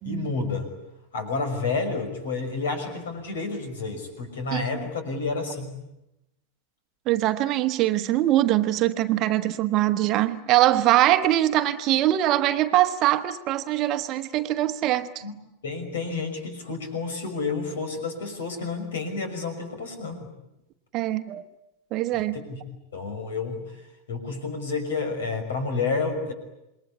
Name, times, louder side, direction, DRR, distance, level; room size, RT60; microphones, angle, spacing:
voice 1, 0.0-0.7 1.1-5.8 15.2-15.4 15.6-20.3 22.1-22.6 22.9-26.3, left 4 dB, 60° left, 5.9 m, -30 dB
voice 2, 7.1-15.1 20.9-21.4 21.9-22.4, right 14 dB, 35° right, 1.2 m, -22 dB
27.5 x 22.0 x 9.8 m
figure-of-eight pair, 90°, 0 cm